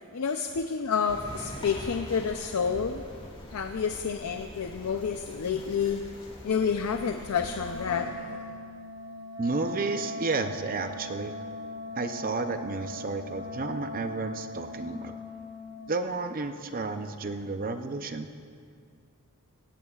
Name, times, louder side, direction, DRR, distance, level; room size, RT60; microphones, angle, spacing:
voice 1, 0.1-3.0 3.5-6.0 6.4-8.5, left 6 dB, 75° left, 6 dB, 0.5 m, -29 dB
sound 1, 1.1-7.8, equal, 25° left, 2.2 m, -44 dB
Wind instrument woodwind instrument, 7.4-15.8, left 1 dB, 20° right, 3.2 m, -40 dB
voice 2, 9.4-11.3 12.0-15.2 15.9-18.3, right 3 dB, 40° right, 7 dB, 0.5 m, -32 dB
17.5 x 17.5 x 2.4 m, 2.2 s
head